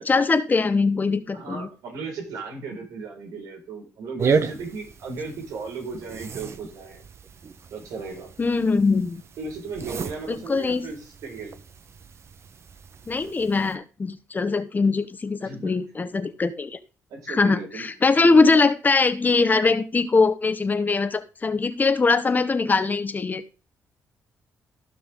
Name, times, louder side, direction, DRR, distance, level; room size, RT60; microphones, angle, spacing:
voice 1, 0.0-1.7 8.4-9.2 10.3-10.9 13.1-16.8 17.3-23.4, left 4 dB, 30° left, 10 dB, 1.3 m, -22 dB
voice 2, 1.3-7.0 7.7-8.3 9.4-11.5 15.4-15.7 17.1-17.9 18.2-18.5, right 4 dB, 85° right, 0 dB, 5.1 m, -36 dB
sound 1, 4.2-13.7, right 5 dB, 50° right, 1.1 m, -33 dB
15.0 x 6.0 x 3.7 m, 0.34 s
cardioid pair, 90°, 6 cm